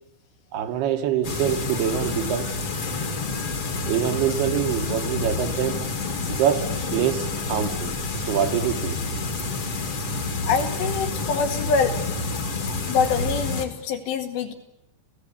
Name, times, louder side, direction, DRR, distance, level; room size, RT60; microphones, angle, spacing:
voice 1, 0.5-2.5 3.9-5.8 6.3-7.9 8.2-9.1, right 10 dB, 70° right, 2.9 m, -25 dB
sound 1, 1.2-13.7, left 3 dB, 40° left, 2.2 m, -28 dB
voice 2, 10.5-11.9 12.9-14.5, left 5 dB, 70° left, 4.2 m, -24 dB
29.0 x 16.0 x 8.5 m
omnidirectional pair, 5.3 m